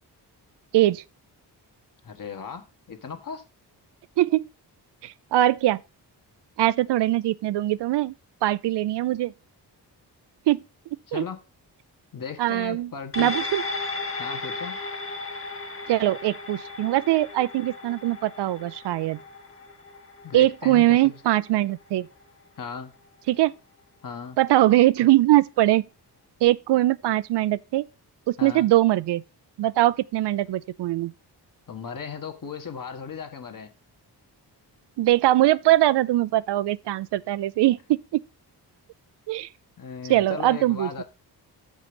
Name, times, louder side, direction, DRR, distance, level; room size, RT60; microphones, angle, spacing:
voice 1, 0.7-1.0 4.2-4.5 5.0-5.8 6.6-8.1 8.4-9.3 10.5-10.6 11.1-11.3 12.4-12.9 13.2-13.6 15.9-19.2 20.3-22.1 23.3-23.5 24.4-25.8 26.4-27.8 28.3-29.2 29.6-31.1 35.0-37.8 38.1-38.2 39.3-39.5 40.1-41.0, right 15 dB, 75° right, 0.5 m, -21 dB
voice 2, 2.0-3.4 11.1-11.4 12.1-13.3 14.2-14.8 20.2-21.1 22.6-22.9 24.0-24.4 28.4-28.7 31.7-33.7 39.8-41.0, left 6 dB, 50° left, 1.5 m, -36 dB
sound 1, 13.1-21.8 22.2-22.3, left 3 dB, 30° left, 1.6 m, -35 dB
7.6 x 5.3 x 5.3 m
cardioid pair, 90°, 41 cm